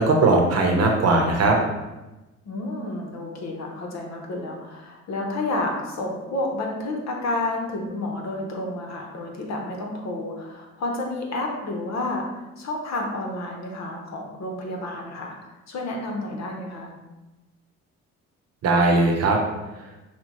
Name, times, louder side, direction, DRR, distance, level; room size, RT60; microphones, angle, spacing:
voice 1, 0.0-1.6 18.6-19.4, right 2 dB, 55° right, 2 dB, 0.8 m, -19 dB
voice 2, 2.4-15.4 15.7-16.9, left 2 dB, 60° left, 0 dB, 1.0 m, -30 dB
5.7 x 2.2 x 3.0 m, 1.1 s
cardioid pair, 90°, 30 cm